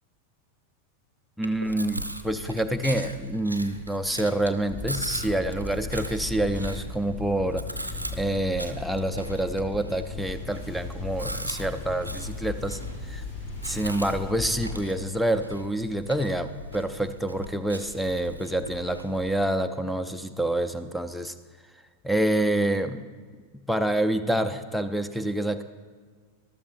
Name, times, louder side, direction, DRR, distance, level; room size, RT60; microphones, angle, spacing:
voice 1, 1.4-7.7 8.1-13.2 13.6-21.3 22.0-23.1 23.7-25.6, right 1 dB, ahead, 10 dB, 0.5 m, -27 dB
Chewing mastication, 1.4-19.5, equal, 90° right, 0.6 m, -39 dB
sound 1, 4.7-14.9, left 3 dB, 35° left, 2.7 m, -37 dB
sound 2, 10.1-15.8, left 2 dB, 60° left, 3.4 m, -53 dB
13.5 x 12.5 x 2.6 m, 1.5 s
figure-of-eight pair, 90°, 0 cm